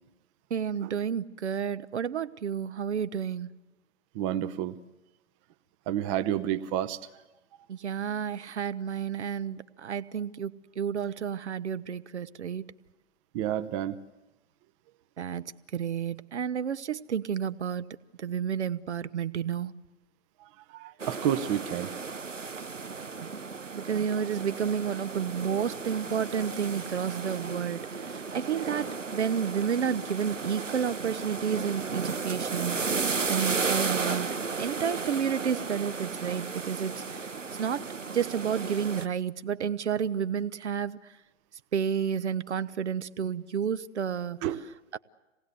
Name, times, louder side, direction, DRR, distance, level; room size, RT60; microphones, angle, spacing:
voice 1, 0.5-3.5 7.7-12.7 15.2-17.9 18.2-19.7 23.2-23.3 23.7-34.3 34.6-37.3 37.6-41.0 41.7-44.4 44.9-45.0, right 8 dB, 65° right, 15 dB, 0.9 m, -31 dB
voice 2, 4.1-4.8 5.9-7.0 13.3-14.0 20.7-21.9 44.4-44.6, right 11 dB, 25° right, 9 dB, 0.7 m, -29 dB
sound 1, 21.0-39.1, right 4 dB, 85° right, 1.0 m, -34 dB
26.0 x 18.5 x 8.2 m, 1.1 s
figure-of-eight pair, 115°, 37 cm